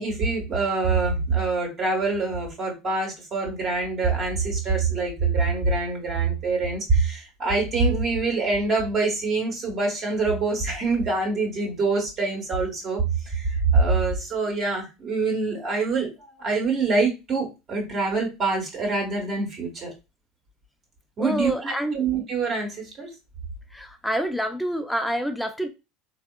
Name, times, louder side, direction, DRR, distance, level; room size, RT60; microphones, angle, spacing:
voice 1, 0.0-19.9 21.2-23.1, right 4 dB, 40° right, 1.2 m, -25 dB
voice 2, 21.2-22.0 23.7-25.7, equal, ahead, 0.6 m, -27 dB
3.4 x 2.4 x 2.2 m
hypercardioid pair, 75°, 0 cm